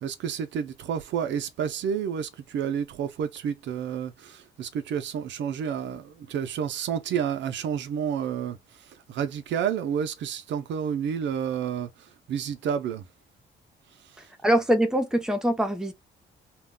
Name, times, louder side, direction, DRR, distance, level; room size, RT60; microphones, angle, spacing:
voice 1, 0.0-8.6 8.9-13.0, right 8 dB, 65° right, 0.4 m, -30 dB
voice 2, 14.4-15.9, right 1 dB, 5° right, 0.6 m, -23 dB
2.2 x 2.1 x 3.5 m
cardioid pair, 90°, 20 cm